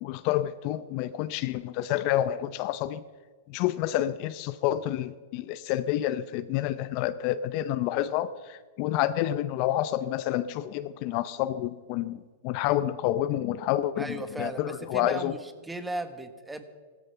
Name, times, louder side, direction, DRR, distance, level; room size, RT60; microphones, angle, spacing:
voice 1, 0.0-3.0 3.5-15.3, left 13 dB, 45° left, 14 dB, 0.6 m, -29 dB
voice 2, 14.0-16.6, right 2 dB, 5° right, 9 dB, 1.3 m, -36 dB
16.0 x 13.5 x 5.7 m, 1.5 s
hypercardioid pair, 135°, 0 cm